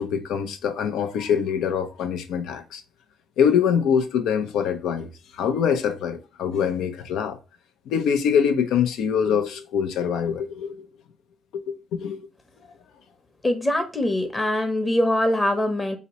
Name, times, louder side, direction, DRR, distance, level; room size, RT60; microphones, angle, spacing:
voice 1, 0.0-2.8 3.4-7.4 7.9-10.9 11.5-12.3, left 7 dB, 85° left, 0.5 m, -24 dB
voice 2, 13.4-16.0, left 1 dB, 20° left, 0.8 m, -23 dB
4.0 x 2.9 x 2.9 m
cardioid pair, 90°, 0 cm